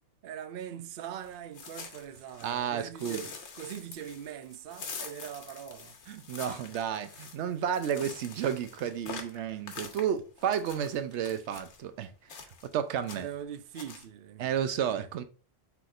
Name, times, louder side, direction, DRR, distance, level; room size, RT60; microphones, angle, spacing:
voice 1, 0.2-6.0 13.1-15.1, right 9 dB, 60° right, 0.7 m, -42 dB
sound 1, 1.2-2.6 3.0-11.8 12.3-12.7 13.0-13.4 13.7-14.0, left 5 dB, 90° left, 1.2 m, -45 dB
voice 2, 2.4-3.2 6.1-12.1 12.7-13.3 14.4-15.2, right 9 dB, 90° right, 0.9 m, -32 dB
5.9 x 3.5 x 2.5 m
omnidirectional pair, 1.1 m